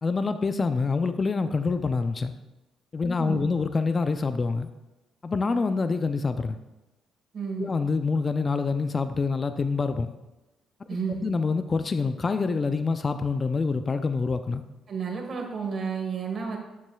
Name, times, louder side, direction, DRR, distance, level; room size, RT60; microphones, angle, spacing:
voice 1, 0.0-2.3 2.9-4.7 5.2-6.6 7.6-10.1 11.2-14.6, left 4 dB, 35° left, 9 dB, 0.4 m, -26 dB
voice 2, 3.1-3.5 7.3-7.7 10.9-11.3 14.9-16.6, right 5 dB, 50° right, 2 dB, 1.5 m, -31 dB
9.5 x 7.2 x 2.3 m, 1.0 s
cardioid pair, 90°, 0 cm